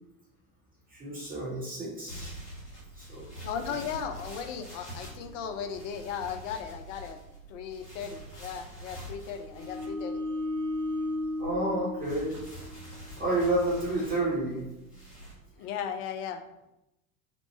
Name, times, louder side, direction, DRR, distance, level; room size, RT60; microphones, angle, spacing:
voice 1, 0.9-2.3 2.9-3.3 11.4-12.4 13.2-14.7, right 1 dB, 20° right, -6 dB, 0.8 m, -30 dB
sound 1, 2.1-15.3, right 1 dB, 85° left, 1.0 m, -46 dB
voice 2, 3.4-7.2 7.5-10.2 15.6-16.4, left 7 dB, 55° left, 8 dB, 0.5 m, -36 dB
sound 2, 9.4-12.9, left 1 dB, 5° right, 0.4 m, -35 dB
3.0 x 2.0 x 3.1 m, 0.90 s
figure-of-eight pair, 75°, 45 cm